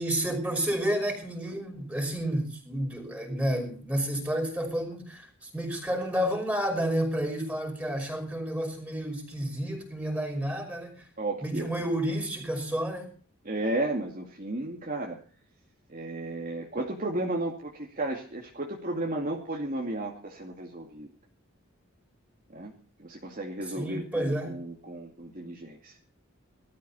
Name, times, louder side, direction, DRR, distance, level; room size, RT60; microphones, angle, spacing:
voice 1, 0.0-11.1 11.4-13.1 23.8-24.6, right 1 dB, 5° right, 2 dB, 5.6 m, -30 dB
voice 2, 11.2-11.7 13.4-15.2 15.9-21.1 22.5-22.7 23.0-26.0, right 2 dB, 40° right, -1 dB, 2.4 m, -33 dB
19.5 x 13.5 x 4.3 m, 0.41 s
head